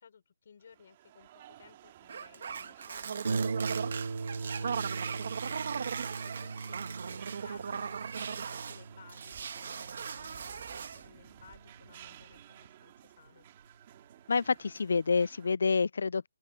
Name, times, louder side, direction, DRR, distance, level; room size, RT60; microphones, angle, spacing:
voice 1, 0.0-6.0 6.4-13.5, left 7 dB, 40° left, 5.0 m, -58 dB
sound 1, 0.6-15.6, right 13 dB, 20° right, 2.4 m, -55 dB
sound 2, 2.1-8.8 9.1-11.1, right 6 dB, 40° right, 1.4 m, -38 dB
Harp, 3.2-12.4 13.3-13.4 13.8-13.9, right 4 dB, 70° right, 0.9 m, -39 dB
voice 2, 14.3-16.3, left 5 dB, 55° left, 0.3 m, -28 dB
open air
hypercardioid pair, 180°, 0 cm